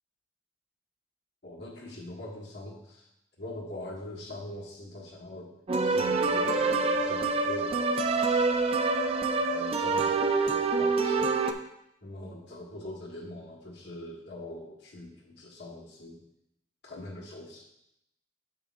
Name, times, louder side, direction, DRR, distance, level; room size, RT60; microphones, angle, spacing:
voice 1, 1.4-3.1 3.4-5.5 5.8-8.2 9.5-11.5 12.0-16.2 16.8-17.7, left 1 dB, 70° left, -2 dB, 1.6 m, -43 dB
sound 1, 5.7-11.5, right 3 dB, 35° right, 0.4 m, -26 dB
8.4 x 7.3 x 2.4 m, 0.83 s
head